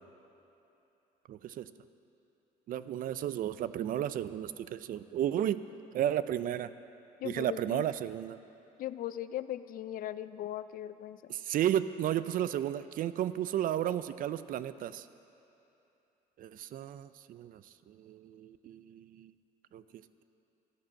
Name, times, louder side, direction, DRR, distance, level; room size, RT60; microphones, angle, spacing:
voice 1, 1.3-1.7 2.7-5.6 5.9-6.7 7.2-8.4 11.3-15.1 16.4-19.3 19.7-20.2, right 11 dB, 55° right, 14 dB, 0.4 m, -33 dB
voice 2, 7.2-7.8 8.8-11.3, left 12 dB, 55° left, 14 dB, 0.4 m, -39 dB
12.5 x 8.7 x 6.4 m, 2.9 s
cardioid pair, 110°, 17 cm